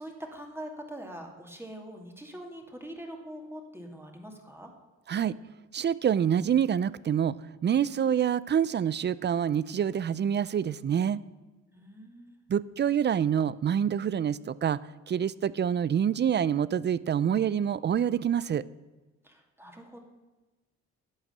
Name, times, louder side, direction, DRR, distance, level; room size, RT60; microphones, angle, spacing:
voice 1, 0.0-4.7 11.7-12.4 19.2-20.0, right 1 dB, 10° right, 2 dB, 2.3 m, -43 dB
voice 2, 5.7-7.4 7.6-11.2 12.5-14.8 15.1-18.6, right 8 dB, 35° right, 19 dB, 0.5 m, -26 dB
11.5 x 8.0 x 7.9 m, 1.2 s
cardioid pair, 90°, 30 cm